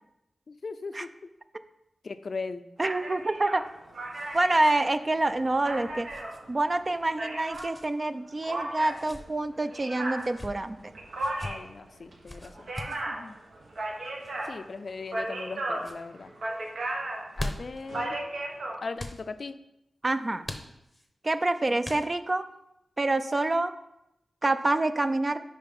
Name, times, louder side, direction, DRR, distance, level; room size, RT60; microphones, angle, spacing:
voice 1, 0.5-1.1 2.0-2.6 11.4-13.4 14.5-16.3 17.4-18.2 18.8-19.6, left 4 dB, 60° left, 11 dB, 0.4 m, -39 dB
voice 2, 2.8-3.7 4.3-6.1 6.5-10.9 20.0-20.4 21.2-22.5 23.0-23.7 24.4-25.4, right 2 dB, 35° right, 11 dB, 0.4 m, -27 dB
sound 1, 2.8-7.8 8.4-18.8, right 1 dB, 70° right, 1.0 m, -36 dB
sound 2, 3.4-4.8 5.0-5.2 6.1-6.4 7.5-7.9 8.8-9.2 10.1-10.5 11.2-11.5 12.3-13.0 14.2-14.5 15.1-15.5 15.8-16.0 17.1-17.8 19.0-19.2 20.4-21.1 21.8-22.4, left 1 dB, 10° left, 0.8 m, -40 dB
5.6 x 4.9 x 5.2 m, 0.85 s
wide cardioid pair, 75°, 0 cm